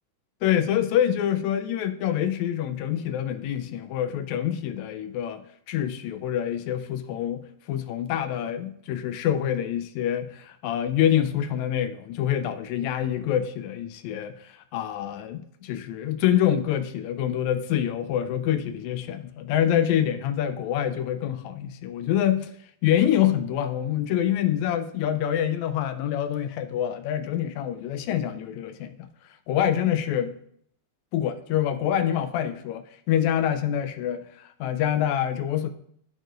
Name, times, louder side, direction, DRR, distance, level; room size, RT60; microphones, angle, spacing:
voice 1, 0.4-22.5 22.8-29.1 29.5-30.4 31.1-35.7, left 10 dB, 80° left, 8 dB, 1.8 m, -26 dB
13.0 x 4.4 x 3.1 m, 0.66 s
omnidirectional pair, 3.5 m